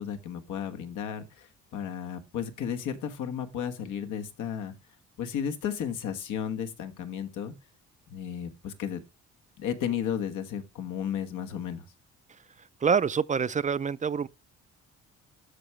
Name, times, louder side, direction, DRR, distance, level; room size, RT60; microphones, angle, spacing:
voice 1, 0.0-1.5 1.7-4.7 5.2-7.5 8.1-9.0 9.6-11.8, left 8 dB, 85° left, 1.4 m, -33 dB
voice 2, 12.8-14.3, right 6 dB, 25° right, 0.4 m, -26 dB
13.0 x 4.8 x 3.2 m
cardioid pair, 90°, 30 cm